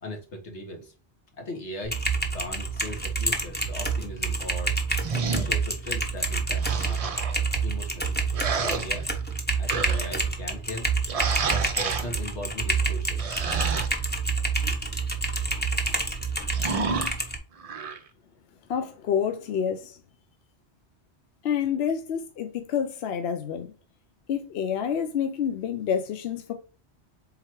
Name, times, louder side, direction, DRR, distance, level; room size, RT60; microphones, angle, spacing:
voice 1, 0.0-0.9 1.4-1.9 2.3-4.7 5.3-7.1 7.6-8.2 8.5-9.1 9.5-10.9 11.4-13.2, left 1 dB, 85° left, 1.7 m, -38 dB
Typing, 1.8-17.4, right 3 dB, 10° left, 0.8 m, -28 dB
sound 1, 5.0-5.6 6.5-7.4 8.3-9.3 9.7-10.2 11.1-12.1 13.2-13.9 16.5-17.1 17.6-18.0, right 5 dB, 45° right, 0.5 m, -30 dB
voice 2, 18.7-20.0 21.4-23.7 24.3-26.5, left 8 dB, 70° left, 0.8 m, -28 dB
4.5 x 3.7 x 3.0 m
omnidirectional pair, 1.1 m